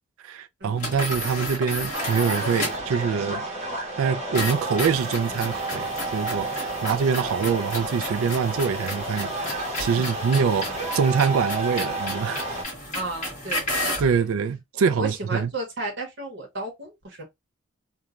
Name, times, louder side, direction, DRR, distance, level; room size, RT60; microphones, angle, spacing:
voice 1, 0.2-3.5 4.0-10.7 10.9-12.4 14.0-15.5, right 6 dB, 75° right, 0.4 m, -25 dB
sound 1, 0.8-2.9 4.3-14.1, left 1 dB, 35° left, 1.4 m, -33 dB
sound 2, 1.9-12.6, right 2 dB, 30° right, 0.9 m, -31 dB
voice 2, 12.9-13.7 15.0-17.2, right 2 dB, 55° right, 1.0 m, -33 dB
3.0 x 2.2 x 2.4 m
head